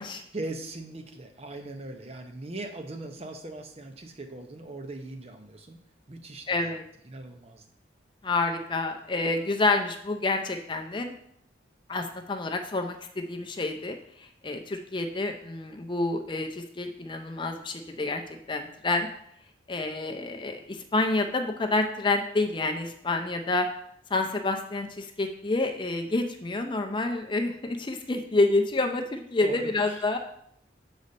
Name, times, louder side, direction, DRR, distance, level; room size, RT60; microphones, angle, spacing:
voice 1, 0.3-5.8 6.1-6.7 7.0-7.6 29.4-30.2, right 2 dB, 35° right, 6 dB, 0.7 m, -40 dB
voice 2, 6.5-6.8 8.2-11.2 11.9-14.0 14.4-18.2 18.5-19.1 19.7-23.7 24.1-30.2, left 2 dB, 25° left, 5 dB, 0.5 m, -28 dB
6.8 x 4.1 x 5.2 m, 0.71 s
head